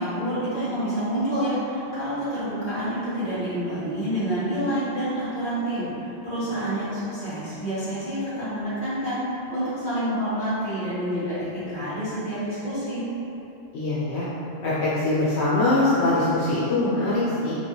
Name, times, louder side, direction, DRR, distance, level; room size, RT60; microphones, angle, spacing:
voice 1, 0.0-9.2 9.5-13.1, right 1 dB, 45° left, -13 dB, 1.4 m, -28 dB
voice 2, 13.7-14.3 14.6-17.6, left 2 dB, 80° left, -10 dB, 0.9 m, -22 dB
3.1 x 2.4 x 2.8 m, 3.0 s
omnidirectional pair, 1.1 m